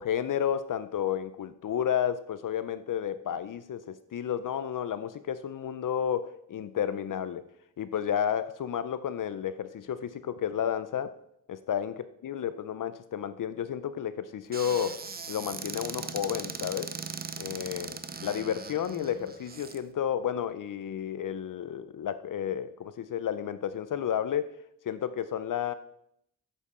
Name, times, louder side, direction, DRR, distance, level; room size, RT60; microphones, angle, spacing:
voice 1, 0.0-7.4 7.8-11.1 11.5-15.0 15.3-16.9 17.4-24.5 24.9-25.7, left 9 dB, 60° left, 12 dB, 0.5 m, -31 dB
Squeak / Cupboard open or close, 14.5-19.8, right 5 dB, 25° right, 0.5 m, -39 dB
8.4 x 7.4 x 4.3 m, 0.74 s
wide cardioid pair, 110°, 37 cm